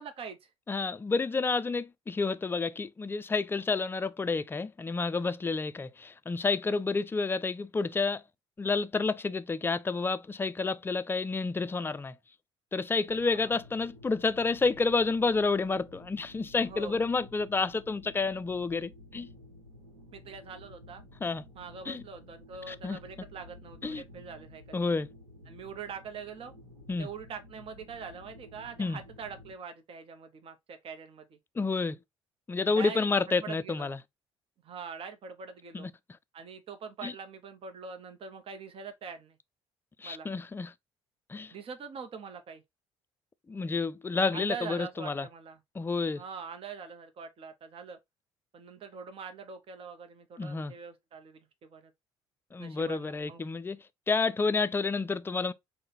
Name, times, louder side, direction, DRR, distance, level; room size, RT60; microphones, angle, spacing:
voice 1, 0.0-0.5 13.2-13.5 16.7-17.0 20.1-21.0 21.5-24.9 25.5-26.5 26.9-31.4 32.6-33.9 34.6-35.9 36.3-39.4 40.0-40.3 41.5-42.6 44.3-45.6 46.2-48.0 48.5-51.9 52.6-53.4, right 5 dB, 40° right, 0.7 m, -43 dB
voice 2, 0.7-8.2 8.6-12.2 12.7-19.3 21.2-21.4 21.9-22.0 22.7-23.0 23.8-24.0 24.7-25.1 26.9-27.1 28.8-29.0 31.6-32.0 32.5-34.0 35.7-35.9 37.0-37.1 40.0-40.7 41.3-41.5 43.5-45.3 45.8-46.2 50.4-50.7 52.5-53.8 54.1-55.5, left 4 dB, 15° left, 0.4 m, -30 dB
sound 1, 13.1-29.5, left 1 dB, 90° right, 0.9 m, -53 dB
3.8 x 2.1 x 3.8 m
figure-of-eight pair, 50°, 14 cm